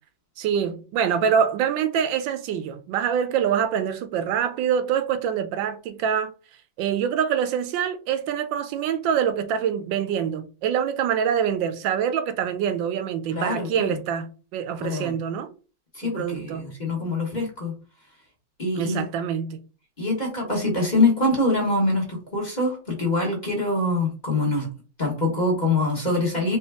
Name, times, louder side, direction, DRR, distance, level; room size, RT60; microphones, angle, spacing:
voice 1, 0.4-6.3 6.8-15.5 16.0-16.7 18.7-19.6, right 8 dB, 85° right, 1.4 m, -25 dB
voice 2, 13.3-14.0 14.8-15.1 15.9-17.7 18.6-19.0 20.0-24.7 25.0-26.6, left 2 dB, 25° left, 1.3 m, -24 dB
4.4 x 3.1 x 3.4 m
omnidirectional pair, 2.0 m